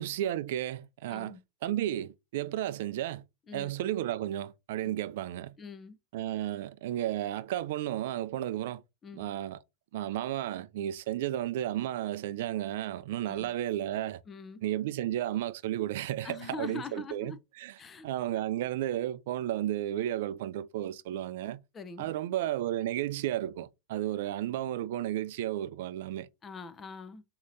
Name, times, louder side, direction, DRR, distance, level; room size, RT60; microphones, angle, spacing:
voice 1, 0.0-1.4 1.6-3.2 3.5-5.5 6.1-8.8 9.1-9.6 9.9-14.2 14.6-17.3 17.6-17.7 18.0-21.6 22.0-26.3, right 13 dB, 70° right, 0.3 m, -33 dB
voice 2, 1.1-1.4 3.5-3.7 4.8-4.9 5.6-6.0 9.0-9.3 13.2-13.5 14.3-14.6 16.2-17.4 17.8-18.1 21.7-22.1 26.4-27.2, left 5 dB, 25° left, 0.6 m, -43 dB
6.3 x 2.8 x 2.6 m
hypercardioid pair, 120°, 0 cm